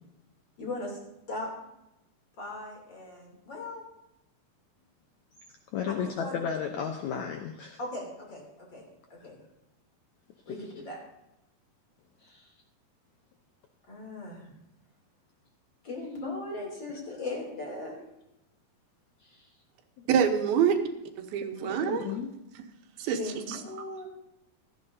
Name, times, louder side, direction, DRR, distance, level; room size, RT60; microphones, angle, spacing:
voice 1, 0.6-1.0 1.3-1.5 2.4-3.8 5.8-6.4 7.8-9.4 10.5-11.0 12.2-12.5 13.9-14.5 15.8-18.0 19.2-19.5 23.2-24.1, left 2 dB, 35° left, -1 dB, 3.2 m, -39 dB
voice 2, 5.7-7.8 21.6-22.3, left 7 dB, 75° left, 4 dB, 1.7 m, -33 dB
voice 3, 20.1-20.8 21.2-22.1 23.0-23.6, right 8 dB, 85° right, 6 dB, 2.9 m, -26 dB
16.5 x 13.0 x 2.7 m, 0.90 s
omnidirectional pair, 4.2 m